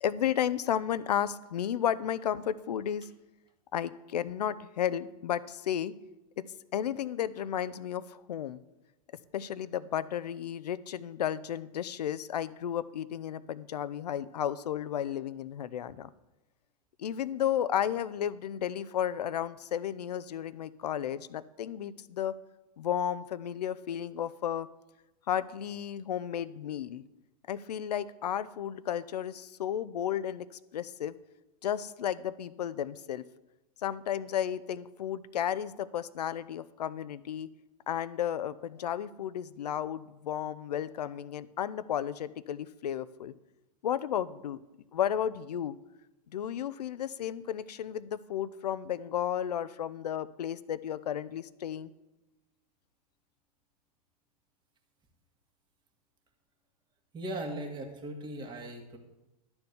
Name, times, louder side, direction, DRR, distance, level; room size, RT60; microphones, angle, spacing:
voice 1, 0.0-3.1 3.7-5.9 6.4-6.5 6.7-8.6 9.3-16.1 17.0-22.4 22.8-24.7 25.3-27.0 27.5-30.4 30.7-31.1 31.6-33.2 33.8-37.5 37.9-43.3 43.8-44.6 44.9-45.7 46.3-51.9, left 10 dB, 90° left, 16 dB, 0.6 m, -33 dB
voice 2, 57.1-59.0, right 1 dB, 20° right, 3 dB, 1.8 m, -38 dB
11.5 x 4.4 x 8.0 m, 0.99 s
hypercardioid pair, 125°, 20 cm